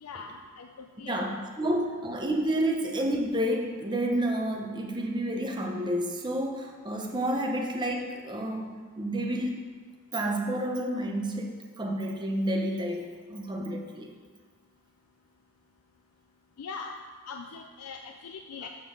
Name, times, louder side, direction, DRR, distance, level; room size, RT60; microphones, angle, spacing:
voice 1, 0.0-1.3 1.6-1.8 16.6-17.0 17.3-18.7, left 5 dB, 85° left, 4 dB, 0.4 m, -41 dB
voice 2, 1.0-9.6 10.1-14.1, right 1 dB, 20° right, 1 dB, 0.8 m, -30 dB
7.1 x 3.9 x 6.3 m, 1.5 s
head